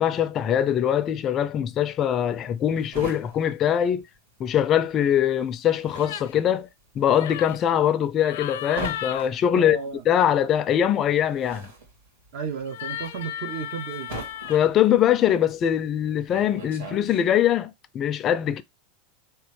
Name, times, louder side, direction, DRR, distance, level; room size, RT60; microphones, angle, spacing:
voice 1, 0.0-4.0 4.4-6.7 7.0-9.8 10.1-11.7 14.5-18.6, left 10 dB, 25° left, 0.4 m, -22 dB
sound 1, 2.1-4.6 4.9-17.5, right 3 dB, 90° right, 2.3 m, -41 dB
sound 2, 6.0-6.4 7.1-7.6 8.2-9.3 12.6-14.6, left 11 dB, 85° left, 0.6 m, -35 dB
voice 2, 9.5-10.0 12.3-14.1, right 6 dB, 55° right, 0.8 m, -33 dB
3.4 x 3.0 x 4.7 m
supercardioid pair, 165°, 0 cm